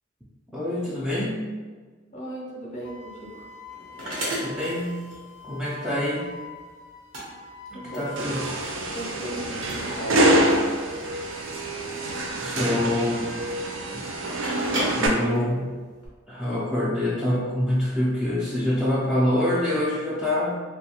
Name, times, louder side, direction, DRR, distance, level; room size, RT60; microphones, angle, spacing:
voice 1, 0.5-1.5 4.4-5.0 5.4-6.3 7.7-8.4 12.4-13.3 13.9-14.0 15.0-15.8 16.3-20.6, left 1 dB, ahead, -8 dB, 0.3 m, -25 dB
voice 2, 2.1-3.5 7.7-8.3 8.9-10.8, right 1 dB, 35° left, -4 dB, 0.6 m, -37 dB
Wind instrument woodwind instrument, 2.8-8.5, left 1 dB, 85° left, 0.4 m, -44 dB
sound 1, 2.8-16.1, right 1 dB, 90° right, 1.0 m, -37 dB
sound 2, 8.2-15.1, right 1 dB, 70° right, 0.4 m, -26 dB
2.6 x 2.2 x 2.8 m, 1.5 s
head